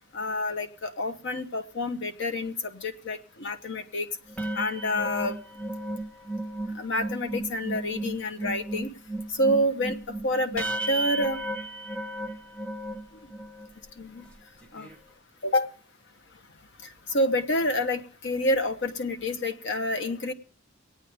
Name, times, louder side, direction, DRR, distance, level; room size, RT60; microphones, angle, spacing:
voice 1, 0.1-4.1 4.5-5.4 6.7-8.9 9.3-11.4 14.0-14.3 14.7-14.9 15.4-15.7 17.1-20.3, left 1 dB, 65° left, 8 dB, 1.1 m, -28 dB
sound 1, 4.3-13.7 14.2-14.4 14.6-14.9, right 2 dB, 5° left, 1.0 m, -34 dB
24.5 x 9.1 x 3.4 m, 0.43 s
head